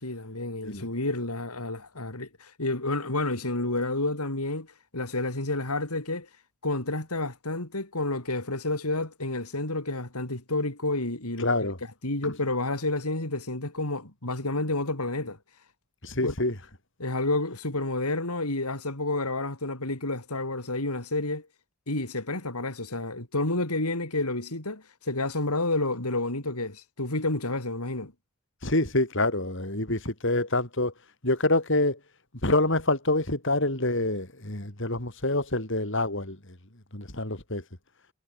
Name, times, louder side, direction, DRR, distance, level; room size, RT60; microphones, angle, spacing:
voice 1, 0.0-4.7 4.9-6.3 6.6-11.7 12.0-15.4 16.2-16.3 17.0-21.5 21.9-28.1, left 2 dB, 90° left, 4.9 m, -30 dB
voice 2, 11.4-11.8 12.2-12.3 16.0-16.5 28.6-30.9 31.2-32.0 32.4-36.4 36.9-37.6, left 2 dB, 55° left, 5.3 m, -26 dB
head